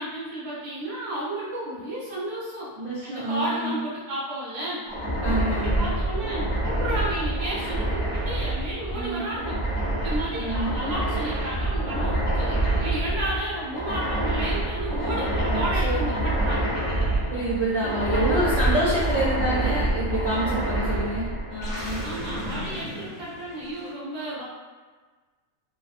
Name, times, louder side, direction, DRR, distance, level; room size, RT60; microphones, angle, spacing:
voice 1, 0.0-2.7 3.0-4.9 5.2-16.7 17.8-19.0 22.0-24.4, right 1 dB, 35° right, -7 dB, 0.4 m, -32 dB
voice 2, 2.8-3.8 5.2-5.9 8.9-9.2 10.3-10.7 15.5-16.0 17.3-22.0, right 1 dB, 65° right, -7 dB, 0.8 m, -27 dB
sound 1, 4.9-23.7, right 1 dB, 30° left, 0.7 m, -27 dB
2.5 x 2.4 x 2.4 m, 1.4 s
omnidirectional pair, 1.6 m